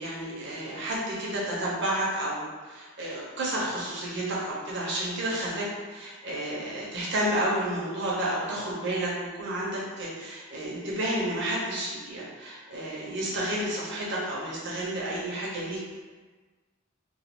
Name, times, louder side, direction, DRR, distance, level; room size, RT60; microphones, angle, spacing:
voice 1, 0.0-15.8, right 1 dB, 60° right, -5 dB, 0.8 m, -31 dB
3.2 x 2.3 x 2.9 m, 1.4 s
head